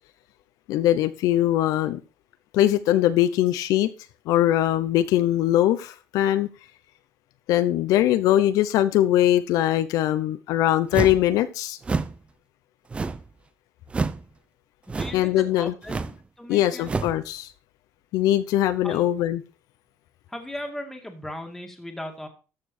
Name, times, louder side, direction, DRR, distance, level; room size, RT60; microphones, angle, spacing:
voice 1, 0.7-2.0 2.5-3.9 4.3-6.5 7.5-11.8 15.1-15.7 16.5-17.5 18.1-19.4, left 13 dB, 70° left, 11 dB, 0.8 m, -21 dB
sound 1, 10.9-11.3 11.8-12.2 12.9-13.3 13.9-14.2 14.9-15.3 15.8-16.2 16.8-17.2, right 4 dB, 20° right, 0.6 m, -28 dB
voice 2, 14.9-16.1 16.4-16.9 18.8-19.0 20.3-22.3, left 1 dB, 5° left, 3 dB, 2.2 m, -37 dB
13.5 x 7.0 x 4.4 m, 0.34 s
cardioid pair, 145°, 6 cm